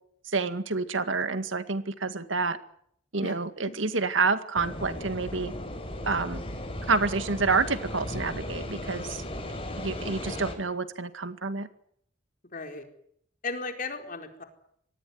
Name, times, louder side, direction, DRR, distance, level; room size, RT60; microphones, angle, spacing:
voice 1, 0.3-2.6 3.1-5.5 6.1-6.4 6.9-9.2 9.8-11.7, right 4 dB, 85° right, 11 dB, 2.1 m, -28 dB
sound 1, 4.6-10.5, left 1 dB, 30° left, 5.5 m, -36 dB
voice 2, 12.5-12.8 13.4-14.4, left 3 dB, 45° left, 5 dB, 4.5 m, -35 dB
25.5 x 19.0 x 9.5 m, 0.69 s
head